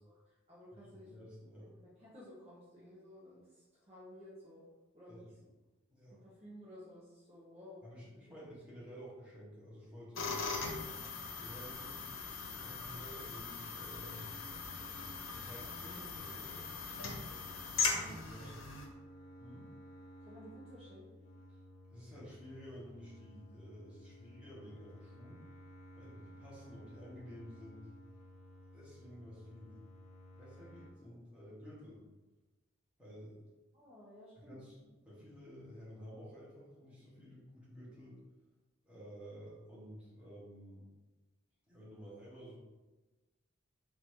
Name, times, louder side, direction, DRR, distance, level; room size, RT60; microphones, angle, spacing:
voice 1, 0.0-1.1 1.6-4.7 4.9-5.2 6.1-7.8 8.3-8.4 10.9-11.2 17.8-18.8 20.2-21.2 33.7-34.6, equal, 30° right, -8 dB, 1.1 m, -55 dB
voice 2, 0.8-1.7 5.1-5.5 5.9-6.2 7.8-10.8 11.3-12.2 12.4-14.3 15.2-16.7 17.8-18.5 19.4-19.7 21.9-25.4 26.0-27.9 28.7-29.8 30.3-32.0 33.0-33.4 34.4-38.2 38.8-40.9 41.7-42.6, equal, 5° right, -9 dB, 1.5 m, -52 dB
sound 1, 10.2-18.9, left 4 dB, 75° left, 0.8 m, -40 dB
sound 2, 14.0-30.9, equal, 40° left, 0.6 m, -56 dB
4.2 x 2.7 x 4.6 m, 1.2 s
head